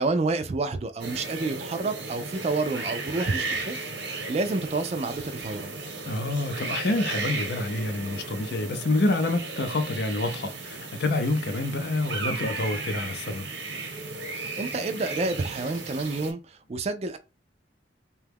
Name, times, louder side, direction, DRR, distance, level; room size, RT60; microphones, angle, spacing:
voice 1, 0.0-5.8 14.3-17.2, right 3 dB, 35° right, 0.3 m, -29 dB
sound 1, 1.0-16.3, right 3 dB, 85° right, 0.8 m, -35 dB
voice 2, 6.1-13.5, left 2 dB, 65° left, 0.5 m, -27 dB
2.9 x 2.2 x 3.4 m
head